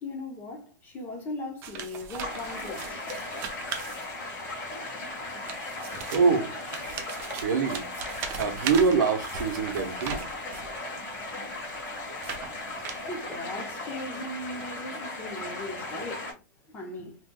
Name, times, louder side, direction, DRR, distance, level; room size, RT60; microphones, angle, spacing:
voice 1, 0.0-3.0 13.1-16.3 16.7-17.2, left 1 dB, 15° left, 0.7 m, -38 dB
sound 1, 1.6-4.5 5.2-10.8 11.4-13.3, right 7 dB, 25° right, 0.4 m, -39 dB
sound 2, 2.2-16.3, left 2 dB, 35° left, 1.5 m, -37 dB
voice 2, 6.1-6.8 7.4-7.8 8.4-10.2, right 5 dB, 70° right, 0.7 m, -25 dB
3.3 x 2.9 x 2.2 m
supercardioid pair, 165°, 10 cm